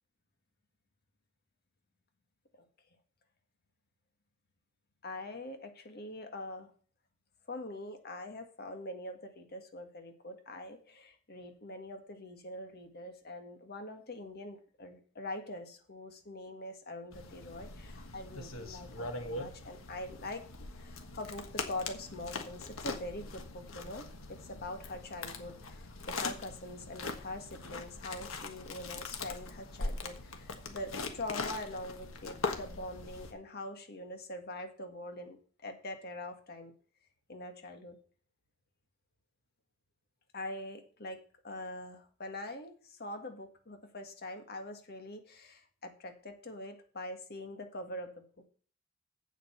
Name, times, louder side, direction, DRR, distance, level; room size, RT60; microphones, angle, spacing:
voice 1, 5.0-6.7 7.5-20.4 20.8-35.4 35.6-36.7 37.3-38.0 40.3-41.2 41.4-48.2, left 1 dB, 50° left, 6 dB, 1.7 m, -43 dB
sound 1, 17.1-33.3, left 3 dB, 85° left, 1.5 m, -41 dB
8.2 x 7.7 x 5.7 m, 0.43 s
head